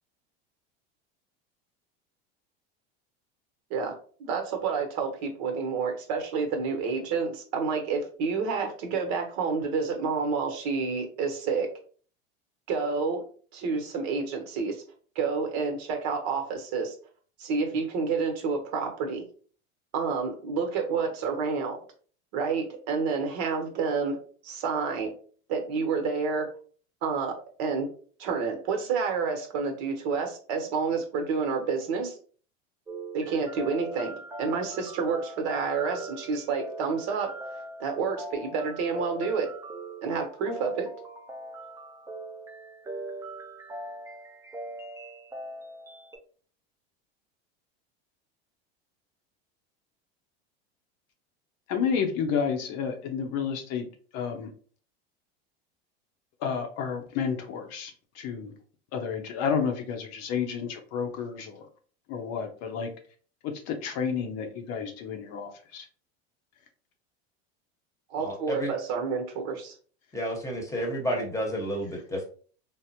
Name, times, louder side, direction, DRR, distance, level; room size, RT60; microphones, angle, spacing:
voice 1, 4.2-11.7 12.7-13.2 13.5-14.8 15.1-16.9 17.4-19.2 19.9-21.8 22.3-25.1 25.5-26.5 27.0-27.9 28.2-32.2 33.1-34.1 34.4-37.3 37.8-39.5 40.0-40.9 68.1-69.7, right 5 dB, 60° right, 4 dB, 0.9 m, -29 dB
sound 1, 32.9-46.2, right 2 dB, 10° right, 0.5 m, -41 dB
voice 2, 51.7-53.9 54.1-54.5 56.4-58.5 58.9-61.7 62.1-62.9 63.4-65.9, left 6 dB, 55° left, 5 dB, 0.7 m, -31 dB
voice 3, 68.2-68.7 70.1-72.2, equal, 10° left, 0 dB, 1.0 m, -31 dB
3.5 x 2.0 x 2.7 m, 0.43 s
supercardioid pair, 105°, 31 cm